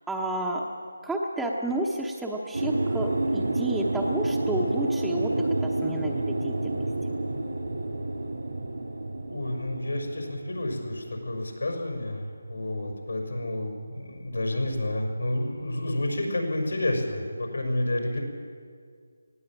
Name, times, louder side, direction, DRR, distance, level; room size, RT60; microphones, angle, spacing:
voice 1, 0.1-0.6 1.0-6.9, right 1 dB, 5° right, -3 dB, 1.1 m, -31 dB
sound 1, 2.5-11.8 12.1-12.2, right 2 dB, 75° right, 3.4 m, -29 dB
voice 2, 9.3-18.2, left 1 dB, 80° left, 2 dB, 6.0 m, -30 dB
19.0 x 16.0 x 8.9 m, 2.1 s
figure-of-eight pair, 165°, 0 cm